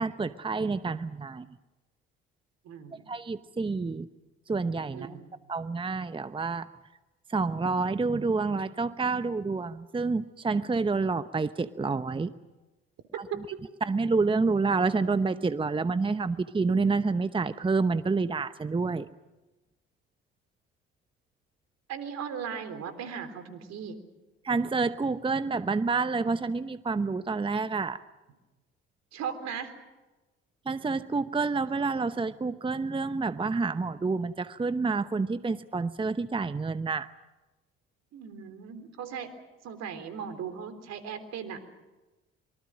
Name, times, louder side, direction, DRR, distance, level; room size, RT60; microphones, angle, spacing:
voice 1, 0.0-1.5 3.1-4.1 4.5-5.2 5.5-6.7 7.3-12.3 13.2-13.3 13.8-19.1 24.4-28.0 30.7-37.1, right 4 dB, 20° right, 13 dB, 0.9 m, -28 dB
voice 2, 2.6-3.0 4.9-5.3 13.3-13.6 21.9-24.0 29.1-29.7 38.1-39.3 39.6-41.6, right 7 dB, 60° right, 9 dB, 3.7 m, -37 dB
26.0 x 24.0 x 6.3 m, 1.1 s
hypercardioid pair, 55°, 29 cm